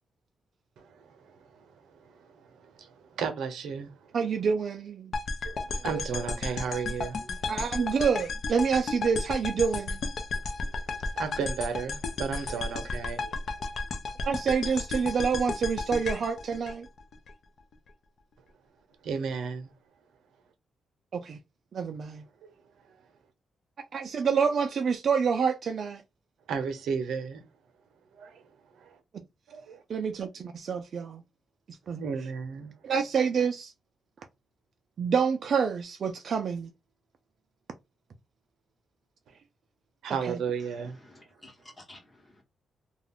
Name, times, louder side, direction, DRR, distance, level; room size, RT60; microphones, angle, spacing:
voice 1, 0.8-1.7 1.9-4.1 5.4-7.3 7.8-7.9 11.2-13.3 19.0-19.7 26.5-27.4 28.2-28.4 28.8-29.0 29.5-29.8 32.0-32.7 40.0-41.0, right 6 dB, 85° right, 0.6 m, -34 dB
voice 2, 4.1-5.1 7.5-10.0 14.2-16.9 21.1-21.4 21.7-22.2 23.9-26.0 29.9-31.2 31.9-32.0 32.8-33.7 35.0-36.7 40.1-40.4, right 6 dB, 45° right, 0.3 m, -27 dB
sound 1, 5.1-17.3, left 3 dB, 50° left, 0.4 m, -34 dB
voice 3, 40.6-42.4, left 1 dB, 20° left, 0.9 m, -53 dB
2.3 x 2.2 x 3.4 m
wide cardioid pair, 160°, 0 cm